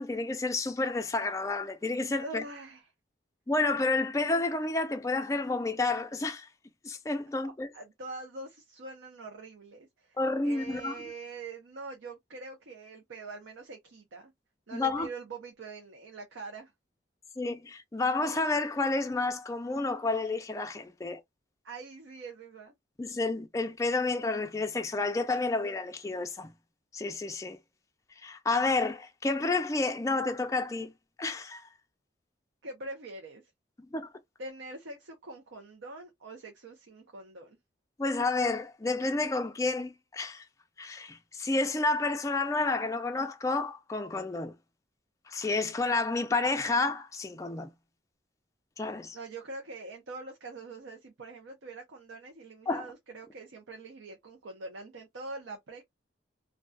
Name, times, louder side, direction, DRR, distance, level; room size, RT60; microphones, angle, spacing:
voice 1, 0.0-2.4 3.5-6.5 6.8-7.7 10.2-11.0 14.7-15.1 17.4-21.2 23.0-26.5 26.9-27.6 28.2-30.9 31.2-31.6 33.8-34.1 38.0-40.4 40.8-44.5 45.3-47.7 48.8-49.2 52.7-52.8, left 3 dB, 15° left, 0.3 m, -30 dB
voice 2, 2.2-2.9 7.4-10.2 10.4-14.3 14.7-16.7 21.6-22.7 32.6-33.4 34.4-37.6 49.1-55.8, right 3 dB, 85° right, 0.6 m, -44 dB
2.3 x 2.2 x 2.5 m
head